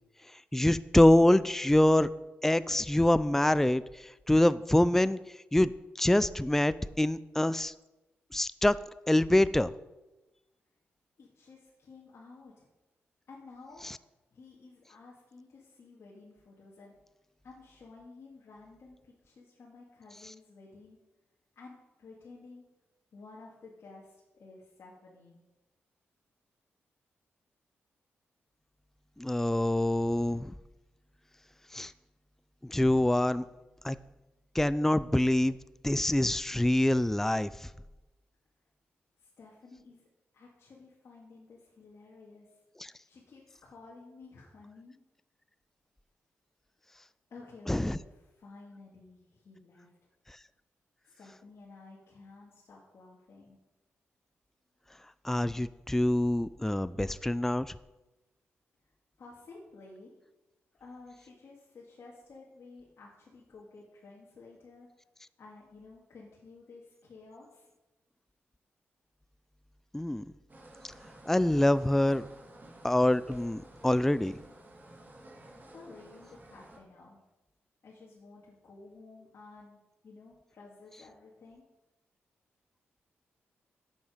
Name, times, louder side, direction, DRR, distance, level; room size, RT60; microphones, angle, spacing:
voice 1, 0.5-2.1 2.4-5.2 5.5-5.7 6.0-7.7 8.3-8.8 9.1-9.7 29.2-30.5 31.7-31.9 32.6-33.4 33.8-34.0 34.5-35.6 35.8-37.5 42.8-42.9 47.7-48.0 55.2-57.7 69.9-70.2 71.3-72.2 72.8-74.4, left 1 dB, 5° left, 16 dB, 0.4 m, -25 dB
voice 2, 11.2-12.7 13.3-13.8 14.3-17.0 17.4-21.0 21.6-22.7 23.1-25.4 39.2-40.1 40.3-42.6 43.1-45.0 47.3-49.9 51.0-53.6 59.2-60.1 60.8-64.9 65.4-67.7 75.7-77.2 77.8-81.6, left 3 dB, 60° left, -4 dB, 2.3 m, -53 dB
sound 1, 70.5-76.8, right 1 dB, 40° right, 2.6 m, -53 dB
10.5 x 8.0 x 5.1 m, 1.0 s
cardioid pair, 60°, 5 cm